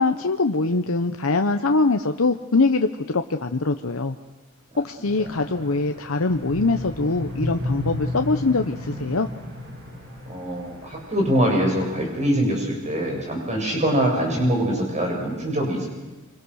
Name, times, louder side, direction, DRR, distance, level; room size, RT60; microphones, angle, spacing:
voice 1, 0.0-2.9 3.1-4.1 4.8-9.3, left 3 dB, 75° left, 6 dB, 1.0 m, -23 dB
sound 1, 5.0-11.8, left 1 dB, 55° right, 7.9 m, -34 dB
voice 2, 5.2-5.6 10.3-15.9, equal, 35° right, 0 dB, 7.2 m, -23 dB
27.0 x 25.5 x 6.5 m, 1.1 s
head